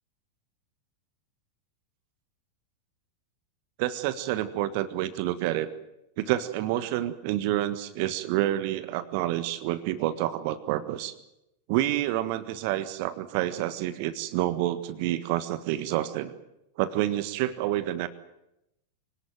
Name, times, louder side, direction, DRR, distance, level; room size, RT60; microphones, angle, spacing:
voice 1, 3.8-5.7 6.2-11.1 11.7-16.3 16.8-18.1, right 14 dB, 45° right, 13 dB, 1.5 m, -28 dB
25.5 x 18.5 x 9.1 m, 0.84 s
figure-of-eight pair, 90°, 0 cm